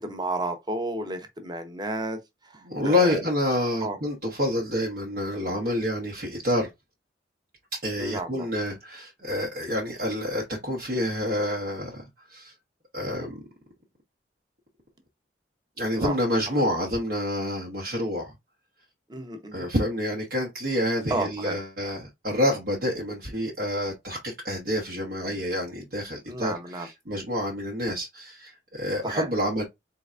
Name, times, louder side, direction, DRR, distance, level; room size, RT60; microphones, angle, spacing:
voice 1, 0.0-3.2 3.8-4.0 8.0-8.5 15.9-16.1 19.1-19.7 21.1-21.6 26.3-26.9 29.0-29.3, right 2 dB, 25° right, 0.9 m, -32 dB
voice 2, 2.6-6.7 7.8-12.5 12.9-13.4 15.8-18.3 19.5-29.6, left 1 dB, 60° right, 1.1 m, -28 dB
4.3 x 3.8 x 2.5 m
head